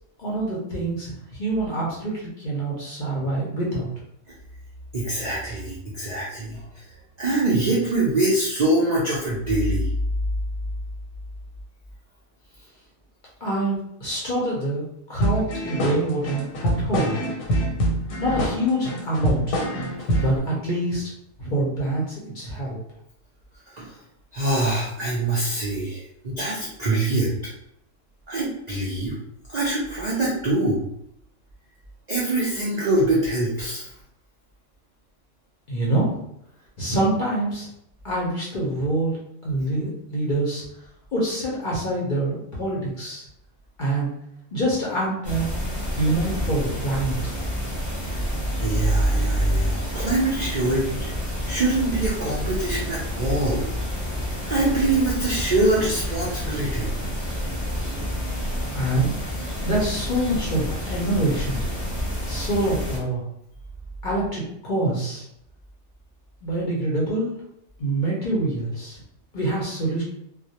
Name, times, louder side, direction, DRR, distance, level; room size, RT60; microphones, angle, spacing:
voice 1, 0.2-3.9 13.4-13.7 14.0-14.8 15.1-17.2 18.2-19.6 20.2-21.1 21.4-22.8 35.7-36.1 36.8-37.7 38.0-39.1 39.4-40.6 41.1-43.2 43.8-44.1 44.5-45.5 46.0-47.3 58.7-59.1 59.6-61.6 62.3-63.2 64.0-65.2 66.4-67.3 67.8-69.0 69.3-70.0, right 1 dB, 50° left, -5 dB, 0.6 m, -25 dB
voice 2, 4.9-6.6 7.2-9.9 23.7-23.9 24.3-27.3 28.3-29.1 29.5-30.8 32.1-33.8 48.6-51.1 51.4-53.6 54.5-56.9, right 2 dB, 80° right, -5 dB, 0.3 m, -23 dB
sound 1, 15.2-20.4, equal, 85° left, 1.1 m, -25 dB
sound 2, 45.2-63.0, equal, 15° left, 0.7 m, -29 dB
2.2 x 2.0 x 2.7 m, 0.75 s
omnidirectional pair, 1.4 m